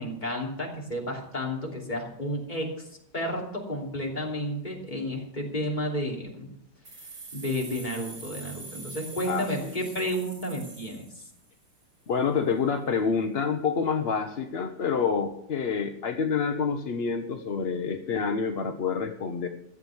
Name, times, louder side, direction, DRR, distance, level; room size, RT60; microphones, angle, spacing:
voice 1, 0.0-2.9 3.1-6.5 7.3-11.2, equal, 25° left, -2 dB, 3.1 m, -32 dB
sound 1, 6.8-11.6, right 3 dB, 85° right, 3.9 m, -44 dB
voice 2, 9.2-9.7 12.1-19.5, left 6 dB, 50° left, 6 dB, 0.8 m, -28 dB
15.0 x 7.8 x 7.1 m, 0.76 s
omnidirectional pair, 1.9 m